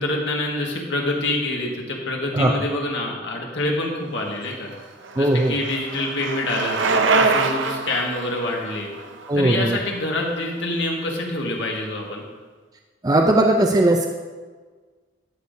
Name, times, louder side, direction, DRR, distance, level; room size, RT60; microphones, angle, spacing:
voice 1, 0.0-4.7 5.1-8.9 9.3-12.2, left 2 dB, 70° left, -1 dB, 1.6 m, -26 dB
Bicycle, 4.5-10.5, right 4 dB, 90° right, 0.7 m, -25 dB
voice 2, 5.2-5.5 9.3-9.8 13.0-14.1, right 1 dB, 20° right, 2 dB, 0.4 m, -18 dB
12.5 x 6.8 x 2.7 m, 1.4 s
head